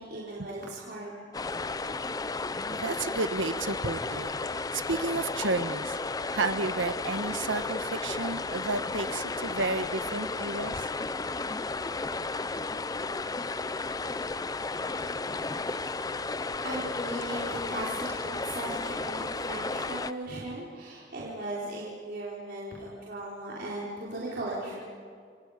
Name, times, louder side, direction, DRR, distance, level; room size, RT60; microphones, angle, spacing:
voice 1, 0.0-1.4 16.6-24.8, right 1 dB, 55° right, -7 dB, 4.7 m, -37 dB
sound 1, 1.3-20.1, left 3 dB, 20° left, 0.5 m, -33 dB
voice 2, 2.7-4.3 4.7-6.0 6.3-10.9, right 3 dB, 90° right, 10 dB, 1.3 m, -31 dB
28.5 x 28.0 x 5.2 m, 2.1 s
head